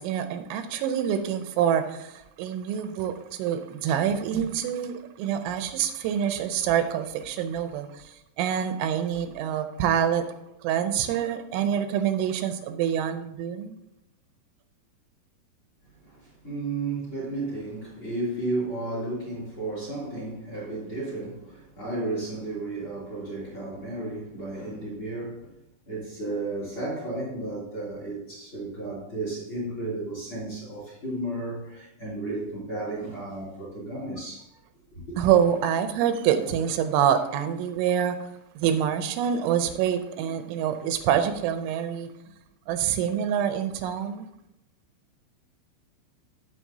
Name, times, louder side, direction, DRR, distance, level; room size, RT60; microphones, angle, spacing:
voice 1, 0.0-10.3 10.6-13.7 35.2-38.2 38.6-42.1 42.7-44.3, right 9 dB, 85° right, 3.0 m, -26 dB
voice 2, 16.0-25.5 25.9-34.5, right 2 dB, 30° left, 3.1 m, -33 dB
15.5 x 5.9 x 2.7 m
omnidirectional pair, 5.5 m